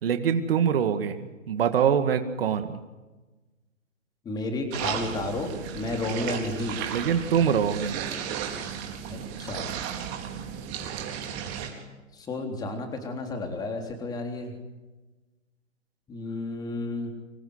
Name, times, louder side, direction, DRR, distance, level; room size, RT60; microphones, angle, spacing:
voice 1, 0.0-2.8 6.9-8.0, right 8 dB, 45° right, 8 dB, 2.2 m, -24 dB
voice 2, 4.3-6.8 9.1-9.7 12.1-14.5 16.1-17.1, left 2 dB, 10° left, 4 dB, 3.5 m, -32 dB
sound 1, 4.7-11.7, right 8 dB, 25° right, 4.3 m, -34 dB
26.5 x 22.0 x 9.6 m, 1.2 s
hypercardioid pair, 150°, 40 cm